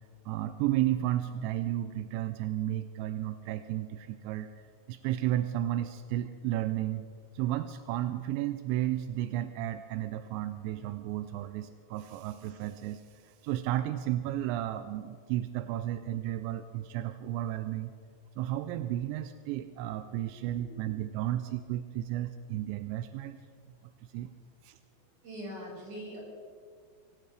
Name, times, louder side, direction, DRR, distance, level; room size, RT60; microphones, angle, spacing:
voice 1, 0.3-4.5 4.9-7.1 7.3-17.9 18.4-23.4 24.1-24.3 24.6-24.8, right 13 dB, 85° right, 10 dB, 2.9 m, -33 dB
voice 2, 25.2-26.2, equal, 40° right, -5 dB, 6.8 m, -42 dB
23.5 x 17.5 x 3.4 m, 2.1 s
omnidirectional pair, 5.1 m